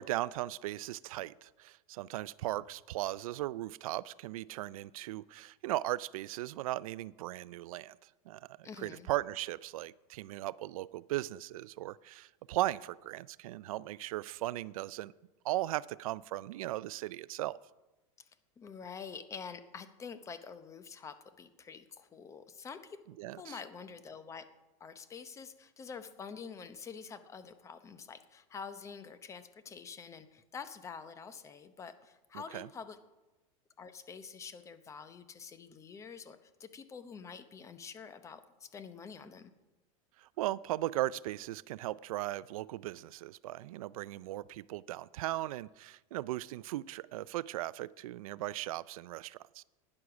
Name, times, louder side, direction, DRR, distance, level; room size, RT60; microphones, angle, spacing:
voice 1, 0.0-15.1 15.4-17.6 23.2-23.6 32.3-32.7 40.2-49.6, right 16 dB, 85° right, 20 dB, 0.4 m, -37 dB
voice 2, 8.6-9.1 18.2-18.3 18.6-23.0 23.4-24.5 24.8-33.0 33.8-39.5, left 6 dB, 15° left, 11 dB, 0.7 m, -47 dB
11.5 x 9.7 x 6.0 m, 1.1 s
supercardioid pair, 150°, 18 cm